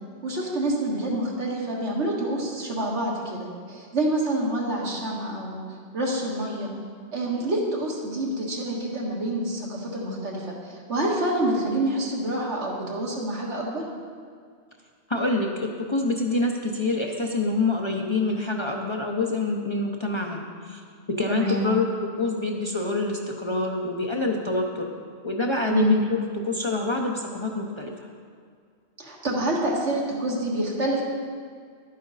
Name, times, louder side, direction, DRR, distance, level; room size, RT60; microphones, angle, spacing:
voice 1, 0.2-5.6 5.9-6.7 7.1-13.8 20.9-21.0 21.3-21.6 25.7-25.9 29.0-31.0, right 1 dB, 75° right, -3 dB, 2.0 m, -27 dB
voice 2, 15.1-20.8 21.1-27.9, left 2 dB, 30° left, 0 dB, 0.7 m, -26 dB
11.5 x 9.3 x 4.1 m, 2.1 s
omnidirectional pair, 1.2 m